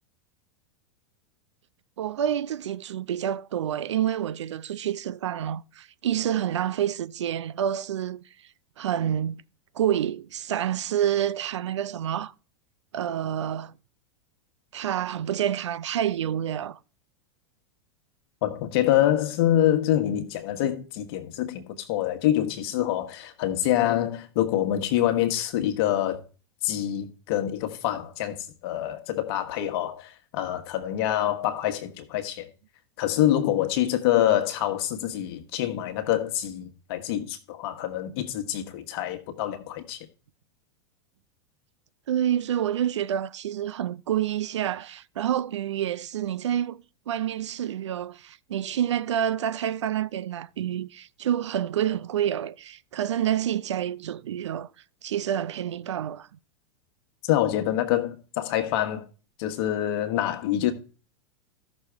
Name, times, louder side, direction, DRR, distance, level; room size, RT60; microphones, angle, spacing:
voice 1, 2.0-8.2 8.8-9.4 9.7-12.3 12.9-13.7 14.7-16.8 42.1-54.7 55.0-56.3, right 10 dB, 75° right, 0.5 m, -28 dB
voice 2, 18.4-26.2 26.6-32.5 33.0-40.1 57.2-59.0 59.4-60.7, left 12 dB, 55° left, 1.3 m, -26 dB
14.0 x 6.3 x 3.4 m
hypercardioid pair, 95°, 15 cm